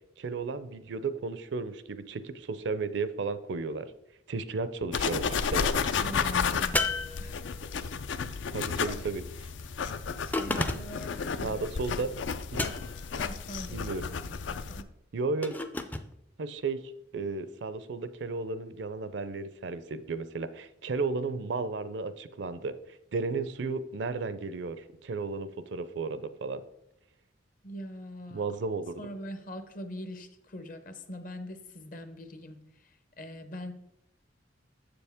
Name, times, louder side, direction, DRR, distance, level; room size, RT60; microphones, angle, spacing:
voice 1, 0.2-3.9 4.3-5.7 8.5-9.2 11.4-12.1 12.5-12.6 13.7-14.1 15.1-15.6 16.4-16.8 17.1-26.6 28.3-28.9, right 4 dB, 65° right, 13 dB, 0.5 m, -34 dB
sound 1, 4.9-14.8, left 6 dB, 75° left, 0.4 m, -32 dB
voice 2, 6.0-7.5 8.3-8.6 8.8-9.0 10.2-11.6 13.2-14.4 14.7-14.9 27.6-28.4 29.0-32.6 33.2-33.7, equal, 45° left, 9 dB, 0.8 m, -42 dB
sound 2, 6.7-7.8 10.3-11.1 12.5-13.1 15.4-16.1, left 2 dB, 10° left, 0.3 m, -32 dB
7.5 x 6.9 x 3.5 m, 0.81 s
head